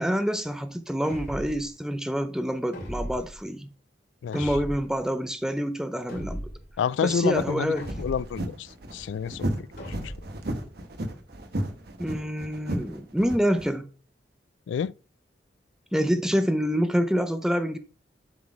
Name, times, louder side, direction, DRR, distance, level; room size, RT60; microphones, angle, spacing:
voice 1, 0.0-3.7 4.3-6.4 7.0-7.9 12.0-13.9 15.9-17.8, equal, 5° right, 0.4 m, -27 dB
sound 1, 1.0-1.7 2.7-3.4 4.3-5.0 6.1-6.7 7.8-8.5 9.8-10.4, equal, 60° left, 2.7 m, -37 dB
voice 2, 6.8-7.7 8.0-9.5 10.0-10.1 14.7-14.9, left 7 dB, 85° left, 0.3 m, -28 dB
sound 2, 7.0-13.7, right 1 dB, 60° right, 1.0 m, -34 dB
7.3 x 4.1 x 4.7 m
head